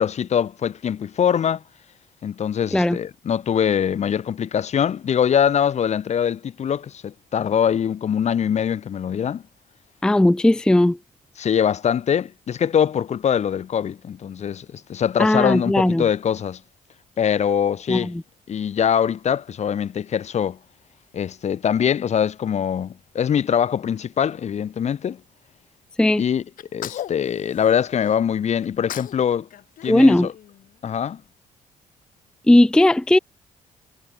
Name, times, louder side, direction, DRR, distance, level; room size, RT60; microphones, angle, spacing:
voice 1, 0.0-1.6 2.2-9.4 11.4-16.6 17.2-18.1 18.5-20.6 21.1-25.2 26.2-26.4 26.7-29.5 29.8-30.3 30.8-31.2, left 8 dB, 50° left, 1.0 m, -23 dB
voice 2, 10.0-11.0 15.2-16.0 17.9-18.2 26.0-26.2 29.9-30.3 32.5-33.2, left 1 dB, 5° left, 0.4 m, -17 dB
Sneeze, 26.6-28.2 28.6-29.2 29.5-31.0, left 11 dB, 70° left, 2.7 m, -37 dB
cardioid pair, 75°, 14 cm